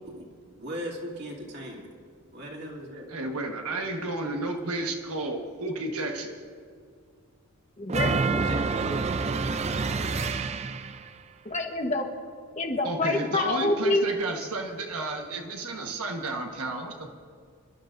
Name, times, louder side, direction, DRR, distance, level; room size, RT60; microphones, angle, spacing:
voice 1, 0.6-1.8 2.3-3.1 8.4-8.6, equal, 50° right, -3 dB, 2.7 m, -37 dB
voice 2, 3.1-6.4 12.8-17.1, right 2 dB, 80° right, 2 dB, 1.3 m, -32 dB
voice 3, 7.8-8.5 8.9-9.0 11.4-12.1 12.6-14.0, left 2 dB, 30° left, 3 dB, 1.2 m, -27 dB
sound 1, 7.9-11.1, right 4 dB, 30° right, 0.4 m, -27 dB
27.5 x 12.0 x 2.6 m, 2.2 s
head